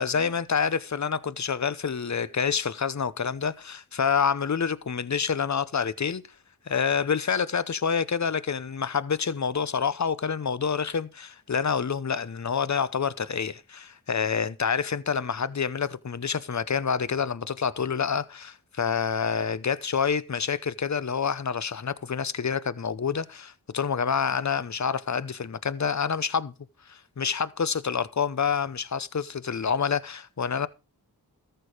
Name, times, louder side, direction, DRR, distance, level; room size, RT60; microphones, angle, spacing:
voice 1, 0.0-6.2 6.7-26.5 26.9-30.7, left 6 dB, 45° left, 0.8 m, -27 dB
13.5 x 6.8 x 5.0 m
cardioid pair, 45°, 39 cm